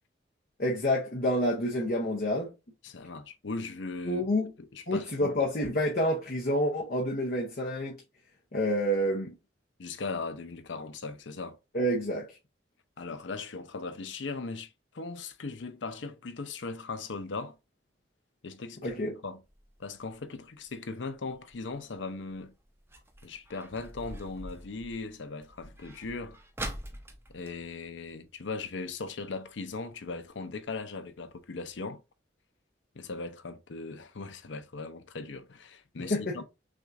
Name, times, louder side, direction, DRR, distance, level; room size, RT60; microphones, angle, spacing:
voice 1, 0.6-2.5 4.1-4.5 4.9-8.0 8.5-9.3 11.7-12.3 18.8-19.1 36.1-36.3, equal, 55° left, 0.9 m, -28 dB
voice 2, 2.8-4.2 4.7-5.5 9.8-11.6 13.0-17.6 18.4-19.4 19.8-22.5 23.2-26.4 27.3-32.0 32.9-36.4, left 3 dB, 90° left, 0.6 m, -38 dB
sound 1, 19.4-28.7 29.0-29.1 29.4-29.7 30.3-30.4 30.9-31.0 31.3-31.4 31.7-31.8, right 1 dB, 15° right, 0.7 m, -45 dB
6.1 x 2.4 x 2.6 m
head